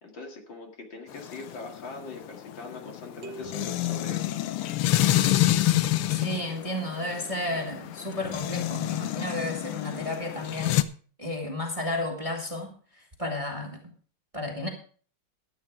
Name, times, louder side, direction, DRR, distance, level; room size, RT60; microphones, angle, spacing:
voice 1, 0.0-4.3, left 3 dB, 60° left, 2 dB, 2.9 m, -41 dB
sound 1, 1.1-10.8, left 14 dB, 80° left, 1.6 m, -28 dB
sound 2, 3.2-5.1, right 6 dB, 60° right, 1.7 m, -47 dB
voice 2, 6.1-10.8 11.2-13.9 14.3-14.7, left 1 dB, 15° right, 1 dB, 1.9 m, -32 dB
13.0 x 9.2 x 4.7 m, 0.43 s
omnidirectional pair, 2.4 m